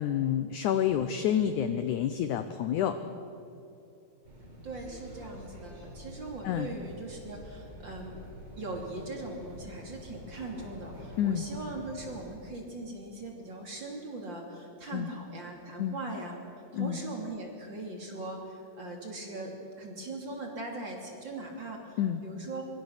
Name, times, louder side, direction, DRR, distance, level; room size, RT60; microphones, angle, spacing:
voice 1, 0.0-3.0 6.4-6.7 11.2-11.5 14.9-15.1 15.8-16.0 16.7-17.0 22.0-22.2, left 10 dB, 75° left, 9 dB, 1.8 m, -28 dB
sound 1, 4.2-12.3, equal, 50° right, 7.1 m, -47 dB
voice 2, 4.6-8.2 8.6-16.3 16.7-22.6, right 2 dB, 30° right, 1 dB, 3.1 m, -40 dB
24.5 x 24.0 x 6.6 m, 2.7 s
omnidirectional pair, 4.4 m